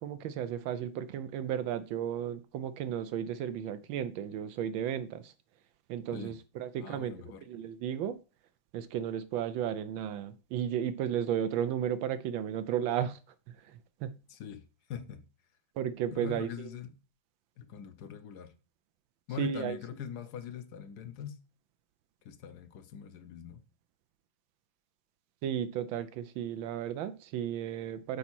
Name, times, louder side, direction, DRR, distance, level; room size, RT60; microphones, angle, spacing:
voice 1, 0.0-5.3 5.9-7.1 7.5-8.2 8.7-13.2 13.7-14.1 15.8-16.5 19.4-19.8 25.4-28.2, right 9 dB, 80° right, 1.4 m, -34 dB
voice 2, 6.8-7.4 14.3-14.6 14.9-15.2 16.1-16.9 17.6-18.5 19.3-21.4 22.2-23.6, left 8 dB, 65° left, 1.2 m, -42 dB
7.2 x 4.1 x 6.1 m
omnidirectional pair, 2.2 m